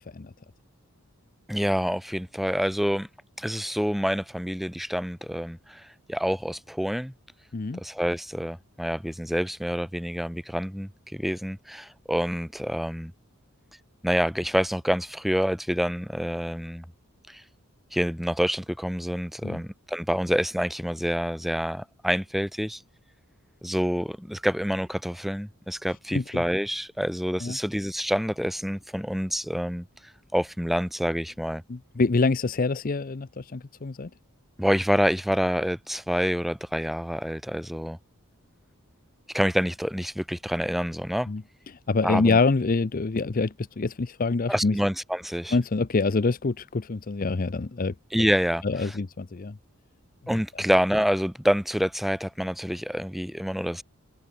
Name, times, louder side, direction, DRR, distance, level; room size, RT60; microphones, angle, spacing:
voice 1, 1.5-3.1 3.4-7.1 7.8-13.1 14.0-16.8 17.3-17.4 17.9-22.8 23.6-29.8 30.3-31.6 34.6-38.0 39.3-41.3 42.0-42.4 44.5-45.6 48.1-48.9 50.3-53.8, equal, ahead, 1.4 m, -27 dB
voice 2, 26.1-26.4 27.4-27.6 31.7-34.1 41.3-41.4 41.9-44.8 45.5-47.9 48.6-49.5, left 3 dB, 40° left, 0.6 m, -26 dB
head